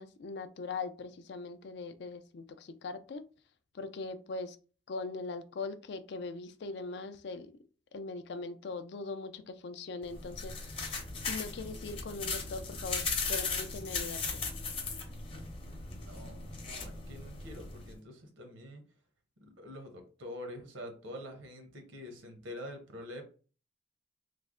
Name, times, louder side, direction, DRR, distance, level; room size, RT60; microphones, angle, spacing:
voice 1, 0.0-3.2 3.7-4.6 4.9-7.6 7.9-10.6 11.2-14.4, left 3 dB, 60° left, 9 dB, 0.4 m, -41 dB
sound 1, 10.0-17.9, left 4 dB, 30° left, 0.7 m, -37 dB
voice 2, 15.3-18.8 19.4-23.2, left 1 dB, 85° right, 5 dB, 0.9 m, -46 dB
3.2 x 2.1 x 3.6 m, 0.37 s
head